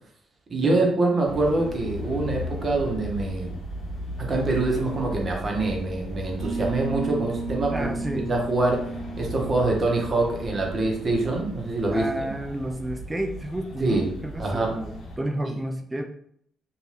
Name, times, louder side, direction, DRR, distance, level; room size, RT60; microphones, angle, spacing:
voice 1, 0.5-3.5 4.2-7.9 8.1-12.2 13.8-14.1 14.4-14.7 15.4-15.5, right 2 dB, 40° right, 0 dB, 0.8 m, -25 dB
sound 1, 1.2-15.2, left 1 dB, 70° left, 0.7 m, -36 dB
sound 2, 6.4-12.0, right 3 dB, 90° right, 0.8 m, -35 dB
voice 2, 7.7-8.3 11.9-16.0, right 1 dB, 15° right, 3 dB, 0.4 m, -31 dB
2.6 x 2.3 x 3.2 m, 0.65 s
cardioid pair, 90°, 0 cm